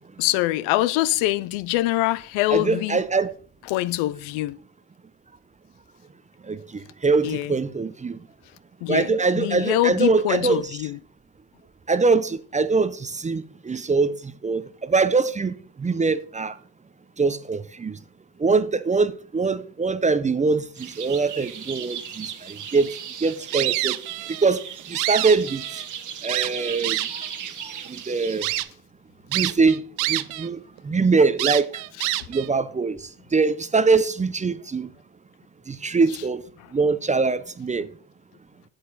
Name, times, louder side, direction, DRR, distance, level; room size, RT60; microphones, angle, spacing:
voice 1, 0.2-3.0 3.7-4.6 7.2-7.5 8.8-9.1 9.4-11.0 32.0-32.1, left 16 dB, 80° left, 0.7 m, -24 dB
voice 2, 2.5-3.3 6.4-8.2 8.9-10.6 11.9-16.6 17.2-18.0 18.4-24.0 24.4-25.6 26.2-27.2 27.6-28.5 29.3-31.7 32.3-34.9 35.7-36.4 36.7-37.9, right 4 dB, 15° right, 0.6 m, -23 dB
sound 1, 20.8-28.6, right 8 dB, 40° right, 1.4 m, -37 dB
sound 2, 23.5-24.5 24.8-25.9 26.3-27.3 27.9-28.0 28.4-28.7 29.3-30.5 30.8-30.9 31.4-32.5, right 19 dB, 80° right, 0.8 m, -27 dB
8.6 x 8.0 x 4.0 m
supercardioid pair, 100°, 47 cm